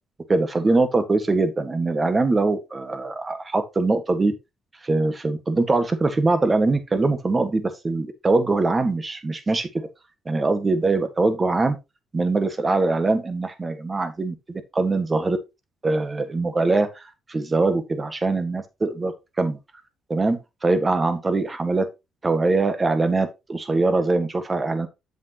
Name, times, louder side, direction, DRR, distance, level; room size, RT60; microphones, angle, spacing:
voice 1, 0.3-4.3 4.8-9.7 10.3-11.8 12.1-15.4 15.8-19.6 20.1-21.9 22.2-24.9, right 3 dB, 25° right, 1.6 m, -22 dB
8.1 x 7.3 x 3.0 m
cardioid pair, 90°, 0 cm